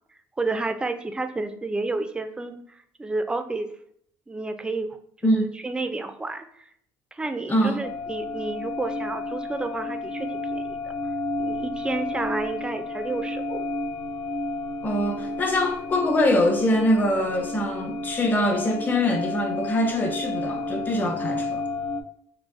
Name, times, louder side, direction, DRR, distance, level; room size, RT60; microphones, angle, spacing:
voice 1, 0.4-2.6 3.0-3.7 4.3-5.0 5.2-6.4 7.1-10.9 11.4-13.7, right 3 dB, 10° right, 8 dB, 0.3 m, -30 dB
voice 2, 7.5-7.8 14.8-21.6, left 1 dB, 25° left, 4 dB, 0.7 m, -23 dB
sound 1, 7.8-22.0, left 2 dB, 70° left, 0.5 m, -31 dB
3.9 x 2.5 x 2.4 m, 0.67 s
cardioid pair, 120°, 8 cm